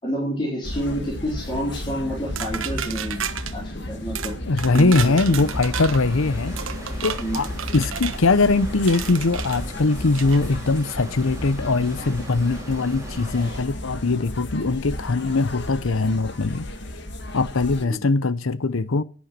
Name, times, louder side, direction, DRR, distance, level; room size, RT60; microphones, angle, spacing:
voice 1, 0.0-3.2 3.5-4.3 4.7-5.5 7.2-7.4 17.8-18.0, equal, 25° left, 4.0 m, -29 dB
sound 1, 0.6-17.9, left 1 dB, 55° left, 1.8 m, -34 dB
sound 2, 2.4-3.5 4.1-4.3 4.6-6.0 6.6-8.2 8.9-9.6 10.1-10.4, right 8 dB, 70° right, 1.1 m, -32 dB
voice 2, 4.5-6.6 7.0-7.5 7.7-16.7 17.3-19.0, left 3 dB, 75° left, 0.8 m, -21 dB
sound 3, 5.0-13.6, right 1 dB, 15° right, 2.7 m, -40 dB
11.0 x 9.7 x 7.7 m
head